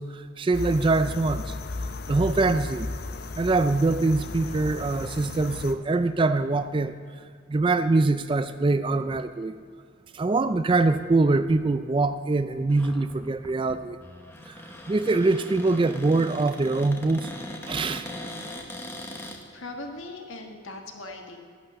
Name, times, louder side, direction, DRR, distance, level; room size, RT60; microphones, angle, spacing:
voice 1, 0.0-1.5 2.1-2.9 3.4-6.9 7.5-9.5 10.1-14.0 14.5-14.6 14.9-17.3 17.7-18.1, right 3 dB, 25° right, 11 dB, 0.3 m, -23 dB
sound 1, 0.5-5.7, left 3 dB, 45° left, 0.7 m, -35 dB
Cupboard open or close, 12.7-19.4, left 1 dB, 10° left, 1.0 m, -40 dB
voice 2, 19.5-21.4, left 2 dB, 65° left, 4 dB, 1.6 m, -39 dB
11.5 x 10.5 x 6.7 m, 2.1 s
head